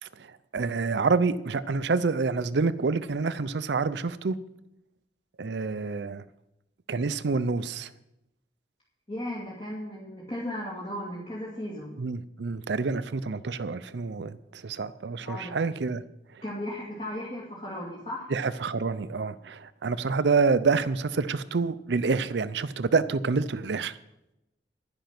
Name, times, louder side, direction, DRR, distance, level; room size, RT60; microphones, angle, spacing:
voice 1, 0.0-4.4 5.4-6.2 6.9-7.9 12.0-16.0 16.3-16.4 18.3-24.0, right 4 dB, 75° right, 15 dB, 0.5 m, -27 dB
voice 2, 9.1-11.9 15.2-15.5 16.4-18.3, left 1 dB, 35° left, -6 dB, 2.6 m, -36 dB
10.5 x 10.5 x 6.0 m, 0.88 s
head